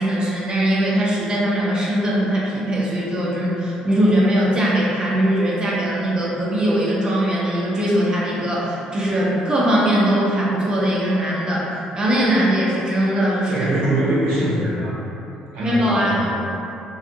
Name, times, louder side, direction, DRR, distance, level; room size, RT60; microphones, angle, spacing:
voice 1, 0.0-13.7 15.6-16.3, right 1 dB, 30° right, -6 dB, 0.8 m, -20 dB
voice 2, 13.5-15.0 15.5-16.3, right 1 dB, 80° right, -9 dB, 0.8 m, -23 dB
2.4 x 2.4 x 2.7 m, 2.8 s
supercardioid pair, 75°, 3 cm